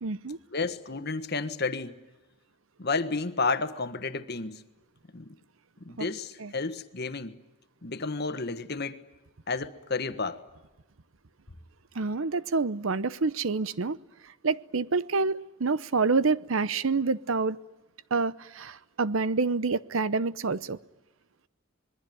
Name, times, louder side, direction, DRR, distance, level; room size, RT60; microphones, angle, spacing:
voice 1, 0.0-0.4 6.0-6.1 6.4-6.5 11.9-14.0 14.4-17.6 18.1-20.8, right 4 dB, 75° right, 0.8 m, -27 dB
voice 2, 0.5-1.9 2.8-4.6 5.1-5.3 5.8-7.4 7.8-9.0 9.5-10.4, left 4 dB, 50° left, 1.4 m, -31 dB
26.5 x 21.0 x 9.3 m
head